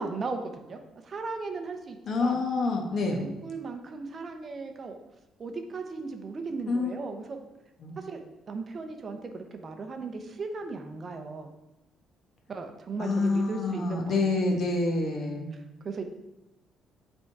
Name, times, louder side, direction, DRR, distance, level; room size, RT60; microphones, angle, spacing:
voice 1, 0.0-2.4 3.2-4.9 5.4-7.4 8.0-11.5 12.5-14.3 15.8-16.0, right 4 dB, 30° right, 5 dB, 0.7 m, -37 dB
voice 2, 2.1-3.2 6.7-6.9 7.8-8.0 13.0-15.5, left 3 dB, 40° left, 2 dB, 1.1 m, -27 dB
8.0 x 3.6 x 4.6 m, 0.97 s
cardioid pair, 165°, 0 cm